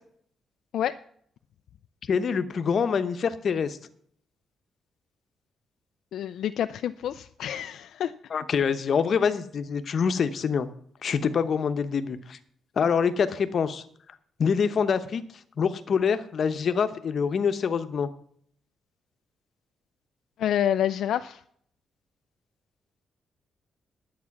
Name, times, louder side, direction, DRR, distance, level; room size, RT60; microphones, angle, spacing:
voice 1, 2.1-3.8 8.3-10.7 11.0-12.4 12.8-13.8 14.4-15.2 15.6-18.1, left 6 dB, 50° left, 10 dB, 0.9 m, -25 dB
voice 2, 6.1-8.1 20.4-21.4, left 10 dB, 80° left, 9 dB, 0.4 m, -28 dB
11.0 x 8.4 x 5.9 m, 0.63 s
cardioid pair, 125°, 0 cm